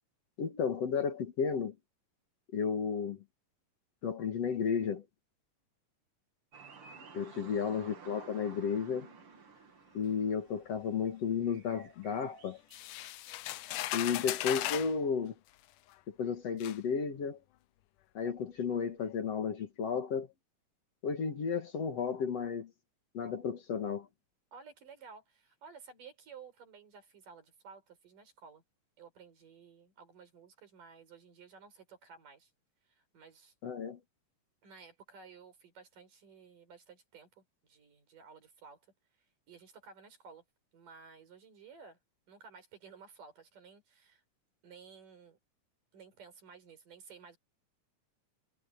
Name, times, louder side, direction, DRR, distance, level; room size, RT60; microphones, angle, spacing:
voice 1, 0.4-1.7 2.5-3.2 4.0-5.1 7.1-9.1 9.9-12.6 13.9-15.3 16.1-17.4 18.1-20.3 21.0-22.7 23.1-24.1 33.6-34.0, left 6 dB, 55° left, 2.7 m, -33 dB
sound 1, 6.5-13.2, right 5 dB, 45° right, 2.9 m, -54 dB
voice 2, 7.4-7.8 14.0-14.5 24.5-28.6 29.0-32.5 32.9-33.5 34.6-38.9 39.5-40.4 40.7-42.0 42.3-44.2 44.6-45.4 45.9-47.4, right 5 dB, 80° right, 6.4 m, -55 dB
sound 2, 12.7-14.9 15.9-16.0 16.6-16.8, left 16 dB, 80° left, 2.2 m, -37 dB
omnidirectional pair, 3.7 m